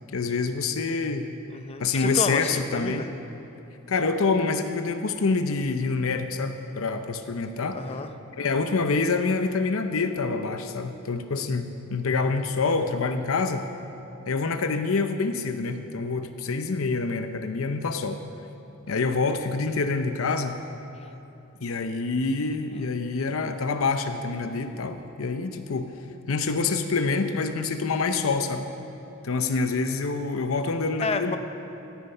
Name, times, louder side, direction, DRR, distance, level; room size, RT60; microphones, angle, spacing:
voice 1, 0.1-1.3 1.8-3.1 3.9-7.8 8.4-13.7 14.3-18.2 18.9-20.6 21.6-25.9 26.3-28.7 29.2-31.4, left 4 dB, 75° left, 8 dB, 0.7 m, -26 dB
voice 2, 1.5-3.1 7.7-8.1 21.0-21.1 31.0-31.4, left 3 dB, 30° left, 8 dB, 0.6 m, -30 dB
16.5 x 9.4 x 5.5 m, 3.0 s
head